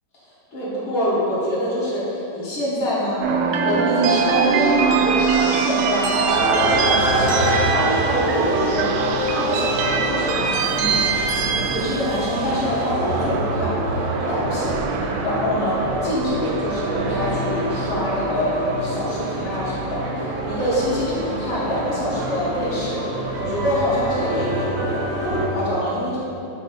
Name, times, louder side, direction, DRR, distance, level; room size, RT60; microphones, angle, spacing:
voice 1, 0.2-10.4 10.7-11.0 11.4-14.8 15.2-26.2, equal, 65° left, -9 dB, 2.3 m, -25 dB
sound 1, 3.2-19.4, right 5 dB, 80° right, 1.3 m, -23 dB
sound 2, 6.3-25.5, right 1 dB, 60° right, 0.9 m, -26 dB
5.3 x 4.1 x 5.2 m, 2.9 s
omnidirectional pair, 2.4 m